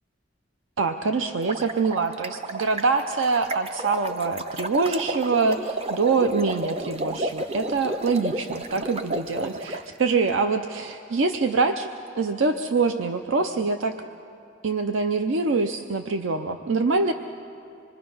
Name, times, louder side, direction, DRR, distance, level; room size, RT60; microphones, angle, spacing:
voice 1, 0.8-11.9 12.2-13.9 14.6-17.1, right 4 dB, 85° right, 7 dB, 0.6 m, -24 dB
sound 1, 1.3-9.8, right 1 dB, 30° right, 0.6 m, -32 dB
26.0 x 21.5 x 5.5 m, 2.5 s
head